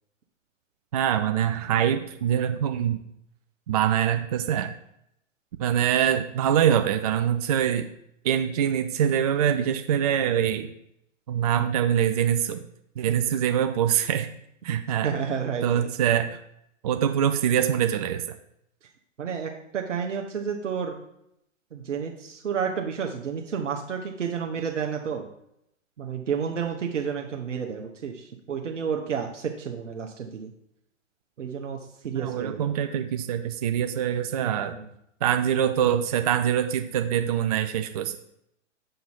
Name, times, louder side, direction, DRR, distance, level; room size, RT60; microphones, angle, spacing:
voice 1, 0.9-3.0 3.7-4.7 5.6-7.9 8.2-10.7 11.3-12.6 13.0-14.3 14.6-15.1 15.6-16.4 16.8-18.2 32.1-34.7 35.2-38.2, right 9 dB, 30° right, 7 dB, 0.4 m, -24 dB
voice 2, 15.0-15.9 19.2-21.0 21.7-25.3 26.0-30.5 31.4-31.8 32.0-32.6 34.4-34.9, right 7 dB, 65° right, 2 dB, 1.1 m, -31 dB
7.6 x 5.4 x 4.5 m, 0.78 s
figure-of-eight pair, 115°, 39 cm